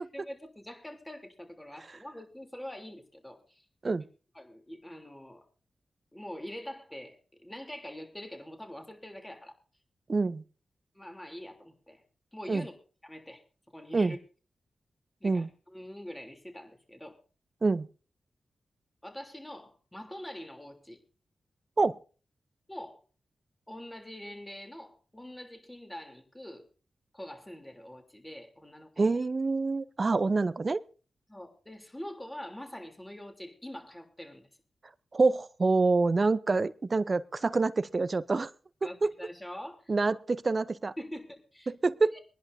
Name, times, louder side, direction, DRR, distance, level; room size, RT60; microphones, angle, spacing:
voice 1, 0.0-3.6 4.3-5.4 6.1-9.5 10.9-12.0 12.3-12.7 13.0-13.4 13.7-14.2 15.2-17.2 19.0-21.0 22.7-23.0 23.7-26.7 27.1-29.2 31.3-34.5 38.8-39.9 41.0-41.7 42.1-42.2, left 1 dB, 15° left, 3.3 m, -44 dB
voice 2, 10.1-10.4 12.5-12.6 13.9-14.1 15.2-15.5 17.6-17.9 21.8-22.0 29.0-30.8 35.1-38.5 39.0-39.1 39.9-40.9 41.7-42.1, right 3 dB, 45° right, 0.7 m, -26 dB
23.5 x 11.0 x 2.7 m
cardioid pair, 45°, 0 cm